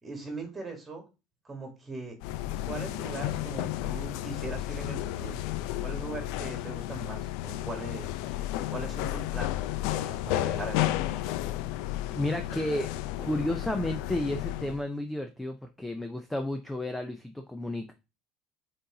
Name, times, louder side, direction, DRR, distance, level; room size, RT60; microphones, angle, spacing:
voice 1, 0.0-1.0 1.4-2.2 2.6-5.4 5.8-9.6 9.9-11.2, right 3 dB, 10° right, 3 dB, 1.9 m, -40 dB
sound 1, 2.2-14.8, left 14 dB, 70° left, 0.4 m, -32 dB
voice 2, 12.1-12.9 13.2-17.9, left 1 dB, 5° left, 6 dB, 0.4 m, -32 dB
6.7 x 3.9 x 3.7 m, 0.28 s
cardioid pair, 165°, 0 cm